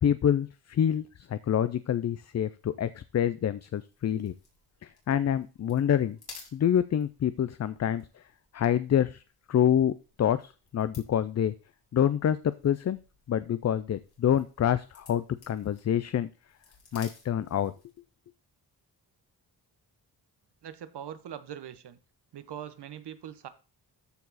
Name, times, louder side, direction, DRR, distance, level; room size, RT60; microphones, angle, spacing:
voice 1, 0.0-4.3 4.8-6.2 6.5-8.2 8.5-9.2 9.5-9.9 10.2-11.5 11.9-13.0 13.3-16.3 16.9-17.7, left 9 dB, 45° left, 14 dB, 0.4 m, -27 dB
sound 1, 3.7-18.1, left 4 dB, 70° left, 3.9 m, -56 dB
voice 2, 20.6-22.0 22.3-23.5, right 10 dB, 85° right, 12 dB, 1.0 m, -42 dB
13.5 x 4.7 x 4.1 m, 0.33 s
wide cardioid pair, 125°, 39 cm